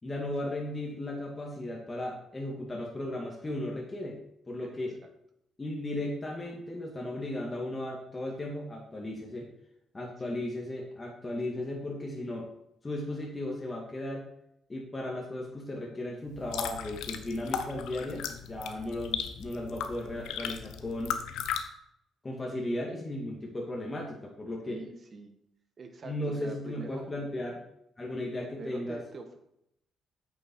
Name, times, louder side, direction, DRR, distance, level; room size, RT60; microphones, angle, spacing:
voice 1, 0.0-4.2 4.5-5.0 5.6-9.5 9.9-12.5 12.8-14.3 14.7-21.1 22.2-24.8 26.0-27.6 28.0-29.0, left 1 dB, 25° left, -2 dB, 2.0 m, -36 dB
sound 1, 16.3-21.6, left 8 dB, 85° left, 0.8 m, -36 dB
voice 2, 24.7-25.3 25.8-27.1 28.4-29.4, right 3 dB, 45° right, 6 dB, 1.6 m, -44 dB
8.4 x 6.7 x 4.6 m, 0.77 s
cardioid pair, 90°, 0 cm